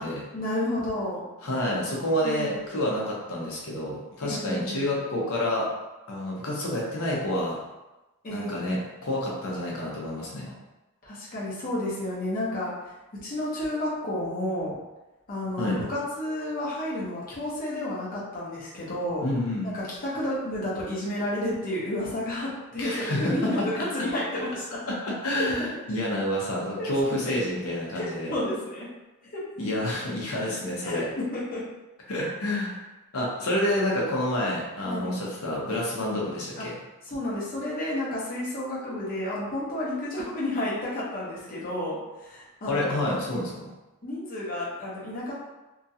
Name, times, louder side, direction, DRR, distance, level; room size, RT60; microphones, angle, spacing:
voice 1, 0.3-1.2 2.2-2.9 4.2-5.0 8.2-8.8 10.4-10.5 11.0-12.7 13.2-14.8 15.3-19.2 19.6-24.9 25.7-25.8 26.8-27.3 27.9-28.9 29.3-29.5 30.8-31.6 34.8-35.2 36.6-36.7 37.0-43.1 44.0-45.3, left 1 dB, 40° left, -7 dB, 0.9 m, -31 dB
voice 2, 1.4-5.7 6.1-7.5 8.3-10.5 15.6-15.8 19.2-19.7 22.8-23.7 24.9-28.3 29.6-31.0 32.1-32.8 33.1-36.7 42.7-43.7, left 1 dB, 75° left, -3 dB, 0.8 m, -28 dB
2.9 x 2.4 x 2.7 m, 1.0 s
head